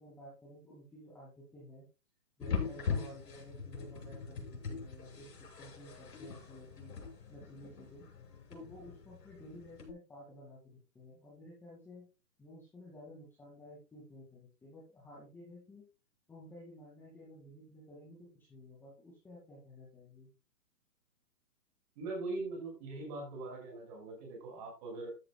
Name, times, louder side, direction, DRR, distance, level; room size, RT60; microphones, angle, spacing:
voice 1, 0.0-1.9 2.4-6.9 7.3-8.1 8.5-12.1 12.4-15.8 16.3-20.3, equal, 5° left, -6 dB, 2.3 m, -53 dB
sound 1, 2.4-9.9, left 5 dB, 80° left, 6.5 m, -41 dB
voice 2, 22.0-25.1, right 2 dB, 25° right, 1 dB, 5.9 m, -41 dB
13.0 x 11.0 x 2.3 m, 0.28 s
hypercardioid pair, 175°, 48 cm